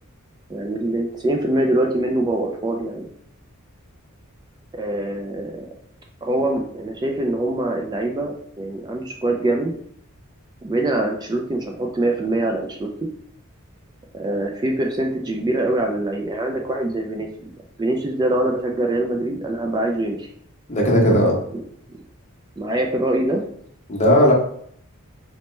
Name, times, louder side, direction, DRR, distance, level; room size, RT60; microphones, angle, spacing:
voice 1, 0.5-3.1 4.7-5.7 6.2-9.7 10.6-13.1 14.1-17.5 17.8-20.3 21.5-21.6 22.6-23.4, right 1 dB, 20° right, 1 dB, 0.3 m, -24 dB
voice 2, 20.7-21.4 23.9-24.3, equal, 30° left, -1 dB, 0.8 m, -16 dB
4.1 x 2.1 x 3.1 m, 0.66 s
head